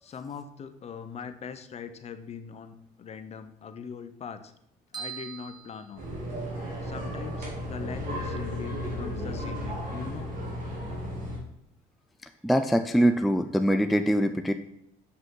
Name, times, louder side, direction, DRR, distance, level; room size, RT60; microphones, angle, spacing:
voice 1, 0.0-4.5 4.9-6.4 6.8-10.3, left 6 dB, 40° left, 9 dB, 0.7 m, -41 dB
sound 1, 4.9-6.7, right 8 dB, 25° right, 1.2 m, -42 dB
sound 2, 6.0-11.4, equal, 55° right, 2.7 m, -34 dB
voice 2, 12.4-14.5, equal, ahead, 7 dB, 0.3 m, -23 dB
6.8 x 5.8 x 3.8 m, 0.77 s
cardioid pair, 110°, 17 cm